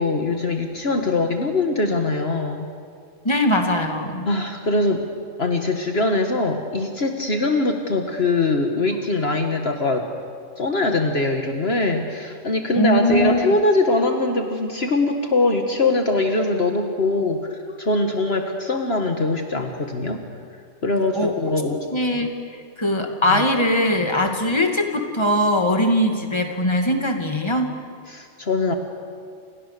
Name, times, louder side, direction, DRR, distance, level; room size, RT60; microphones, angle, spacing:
voice 1, 0.0-2.7 4.3-5.0 5.4-10.1 10.6-20.2 20.8-21.9 23.3-23.5 26.2-26.3 28.1-28.8, left 2 dB, 55° left, 4 dB, 1.9 m, -22 dB
voice 2, 3.2-4.3 12.7-13.4 21.1-21.5 21.9-22.3 22.8-27.8, left 1 dB, 20° left, 3 dB, 2.4 m, -21 dB
29.5 x 28.5 x 6.9 m, 2.2 s
omnidirectional pair, 1.2 m